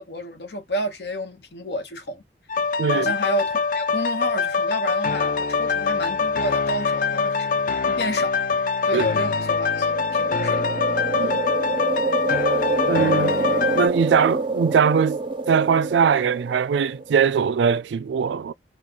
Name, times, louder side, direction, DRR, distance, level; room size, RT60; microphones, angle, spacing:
voice 1, 0.0-2.2 2.9-7.5 7.9-8.4 8.9-10.6 11.1-11.3, equal, 65° left, 1.1 m, -30 dB
sound 1, 2.5-13.9, left 5 dB, 50° left, 0.4 m, -23 dB
voice 2, 2.8-3.1 8.9-9.1 11.2-11.4 12.9-13.4 13.8-15.2 15.5-18.5, right 6 dB, 85° right, 0.3 m, -21 dB
sound 2, 9.6-17.2, right 3 dB, 30° right, 0.5 m, -27 dB
4.0 x 2.3 x 2.9 m
head